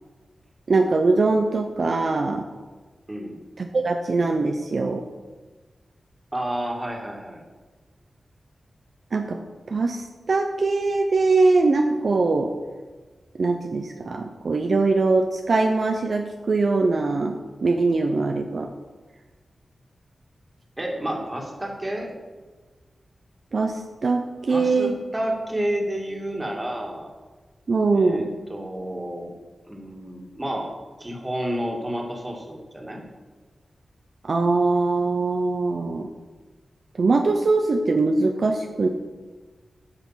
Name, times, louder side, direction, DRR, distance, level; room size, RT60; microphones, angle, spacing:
voice 1, 0.7-2.4 3.6-5.0 9.1-9.4 9.7-12.5 13.4-18.7 23.5-24.9 27.7-28.3 34.2-36.1 37.0-38.9, right 3 dB, 60° right, 4 dB, 0.7 m, -22 dB
voice 2, 6.3-7.4 20.8-22.1 24.5-27.1 27.9-29.3 29.7-30.7 31.0-33.0, right 1 dB, 20° right, 0 dB, 2.1 m, -30 dB
10.5 x 5.9 x 5.8 m, 1.3 s
wide cardioid pair, 95°, 0 cm